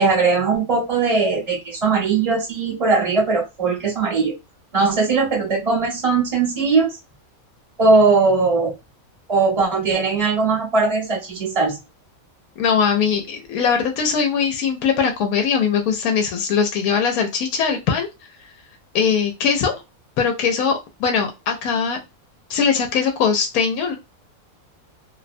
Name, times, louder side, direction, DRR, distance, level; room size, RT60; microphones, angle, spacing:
voice 1, 0.0-4.3 4.7-7.0 7.8-8.7 9.3-11.8, right 4 dB, 30° right, -4 dB, 0.8 m, -19 dB
voice 2, 12.6-18.1 18.9-19.8 20.2-22.0 22.5-23.9, left 6 dB, 90° left, 4 dB, 1.1 m, -21 dB
2.7 x 2.1 x 2.5 m, 0.24 s
omnidirectional pair, 1.5 m